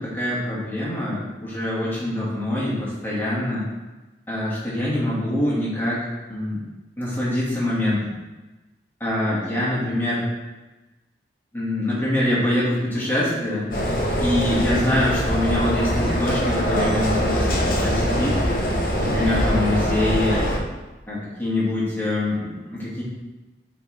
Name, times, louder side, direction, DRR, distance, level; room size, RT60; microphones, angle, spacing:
voice 1, 0.0-3.6 4.3-6.6 7.0-8.2 9.0-10.2 11.5-13.6 14.2-18.4 19.0-20.4 21.1-23.0, left 1 dB, 10° left, -8 dB, 2.0 m, -24 dB
sound 1, 13.7-20.6, equal, 50° left, 0.9 m, -23 dB
6.8 x 4.1 x 3.4 m, 1.1 s
head